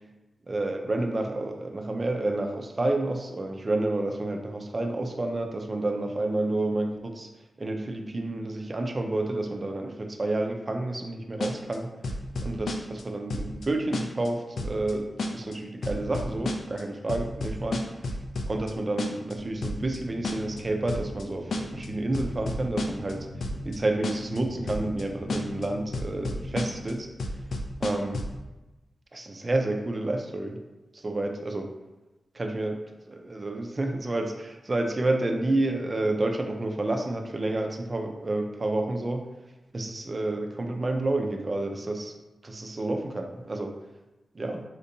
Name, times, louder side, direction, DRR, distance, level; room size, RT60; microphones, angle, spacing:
voice 1, 0.5-7.3 7.6-11.9 12.4-15.0 15.3-17.8 18.5-23.3 23.7-27.1 27.8-28.2 29.1-30.6 31.0-31.7 32.4-32.8 33.1-39.2 39.7-42.1 42.4-43.7 44.4-44.6, right 2 dB, 30° right, 4 dB, 0.4 m, -29 dB
sound 1, 11.4-11.8 12.0-13.0 13.3-13.7 13.9-14.3 14.6-14.9 15.2-15.5 15.8-16.8 17.1-18.7 19.0-19.3 19.6-20.0 20.2-20.6 20.9-21.2 21.5-21.9 22.1-23.1 23.4-23.8 24.0-24.4 24.7-25.0 25.3-25.7 25.9-26.9 27.2-28.4, left 2 dB, 80° left, 0.3 m, -31 dB
sound 2, 19.3-27.0, left 1 dB, 25° left, 0.6 m, -42 dB
4.2 x 2.6 x 2.7 m, 1.0 s
wide cardioid pair, 130°, 0 cm